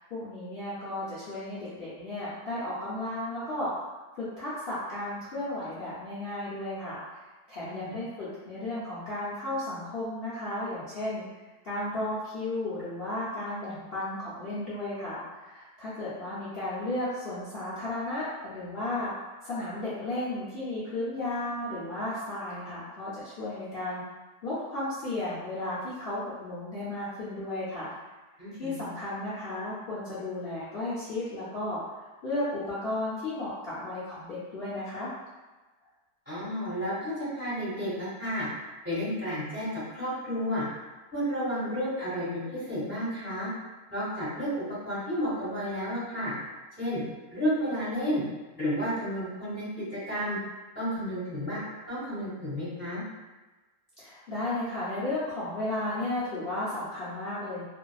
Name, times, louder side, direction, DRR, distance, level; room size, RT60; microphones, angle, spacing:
voice 1, 0.0-3.7 4.2-7.0 7.5-11.2 11.6-19.1 19.4-24.0 24.4-27.9 28.6-31.8 32.2-35.1 54.0-57.6, left 1 dB, 65° left, -11 dB, 0.5 m, -34 dB
voice 2, 7.6-8.0 28.4-28.7 36.3-38.5 38.8-40.6 41.1-43.5 43.9-46.3 46.8-47.0 47.3-48.2 48.5-50.4 50.7-51.6 51.9-53.0, equal, 10° right, -12 dB, 1.3 m, -31 dB
2.6 x 2.5 x 2.3 m, 1.2 s
omnidirectional pair, 1.8 m